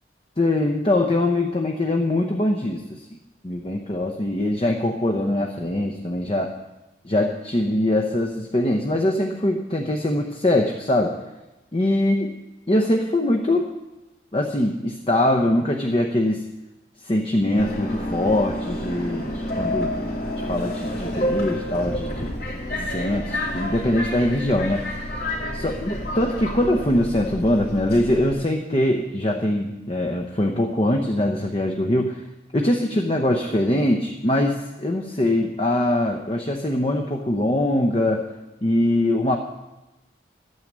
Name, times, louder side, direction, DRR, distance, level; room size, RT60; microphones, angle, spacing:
voice 1, 0.4-3.0 3.4-6.5 7.0-11.1 11.7-12.3 12.7-13.7 14.3-16.4 17.0-19.9 20.4-22.3 22.8-24.8 25.5-32.2 32.5-38.2 38.6-39.4, left 1 dB, 30° left, 3 dB, 0.8 m, -22 dB
Subway metro underground, 17.6-28.3, left 1 dB, 55° left, 2.9 m, -29 dB
12.0 x 9.5 x 7.4 m, 1.0 s
head